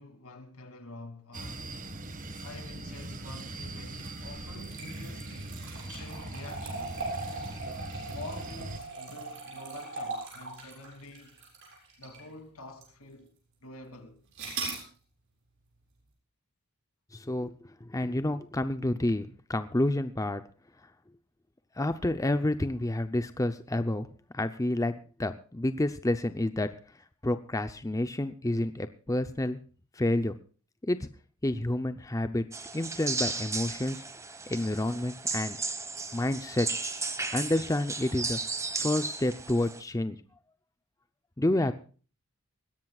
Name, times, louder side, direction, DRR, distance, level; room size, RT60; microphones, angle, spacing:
voice 1, 0.0-1.7 2.4-5.5 5.9-7.0 7.9-11.4 12.0-13.4 13.6-14.2 41.5-41.7, left 2 dB, 75° left, 2.8 m, -47 dB
sound 1, 1.3-8.8, right 2 dB, 35° right, 1.6 m, -41 dB
sound 2, 3.9-12.3 12.8-12.9 14.4-14.8, right 3 dB, 60° right, 7.5 m, -39 dB
voice 2, 17.1-17.5 17.8-20.4 21.8-24.1 24.3-26.7 27.2-29.6 30.0-30.4 30.8-31.1 31.4-32.4 32.7-34.0 34.5-35.6 36.1-36.7 37.3-38.4 38.7-40.2 41.4-41.7, left 1 dB, 15° left, 0.6 m, -29 dB
sound 3, 32.5-39.8, right 3 dB, 15° right, 1.4 m, -35 dB
21.0 x 17.0 x 2.4 m
head